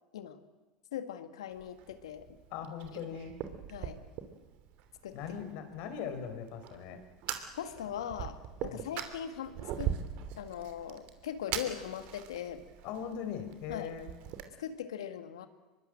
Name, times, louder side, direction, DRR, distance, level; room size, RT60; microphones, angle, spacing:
voice 1, 0.9-2.3 3.1-3.2 3.7-4.0 5.0-5.2 7.6-9.9 10.4-12.6 13.7-13.9 14.6-15.5, left 9 dB, 85° left, 9 dB, 2.1 m, -40 dB
Fire, 1.5-14.4, right 10 dB, 60° right, 3.0 m, -42 dB
voice 2, 2.5-3.4 5.1-7.0 8.7-8.9 12.8-14.1, left 7 dB, 65° left, 7 dB, 4.6 m, -40 dB
25.0 x 22.5 x 7.7 m, 1.2 s
hypercardioid pair, 85°, 3 cm